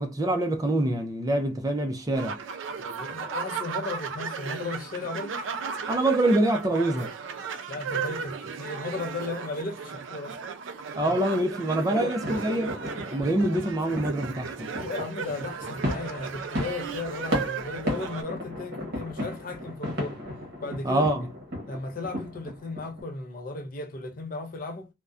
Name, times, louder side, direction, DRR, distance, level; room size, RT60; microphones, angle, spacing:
voice 1, 0.0-2.4 5.9-7.1 11.0-12.8 13.1-14.7 20.8-21.3, right 1 dB, 20° right, 0.4 m, -25 dB
sound 1, 2.1-18.2, right 6 dB, 85° right, 0.4 m, -35 dB
voice 2, 2.8-5.3 7.7-10.4 11.0-11.1 11.9-12.2 14.7-20.2 20.6-21.0 21.7-24.9, left 3 dB, 45° left, 0.5 m, -35 dB
sound 2, 12.2-23.0, left 1 dB, 55° right, 0.9 m, -35 dB
2.5 x 2.1 x 2.3 m
head